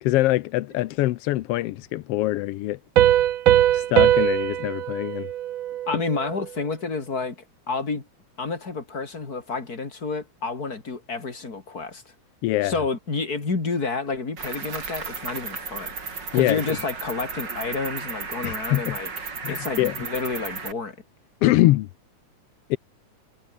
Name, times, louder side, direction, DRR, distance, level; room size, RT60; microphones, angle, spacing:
voice 1, 0.0-2.8 3.7-5.3 12.4-12.7 16.3-16.8 18.4-19.0 19.4-19.9 21.4-21.9 22.7-22.8, left 16 dB, 80° left, 1.4 m, -23 dB
Piano, 3.0-6.4, right 12 dB, 70° right, 1.1 m, -21 dB
voice 2, 5.9-8.1 8.4-12.0 12.6-15.9 16.3-21.0, left 4 dB, 30° left, 3.8 m, -30 dB
Cricket, 14.4-20.7, right 4 dB, 35° right, 3.7 m, -34 dB
omnidirectional pair, 3.4 m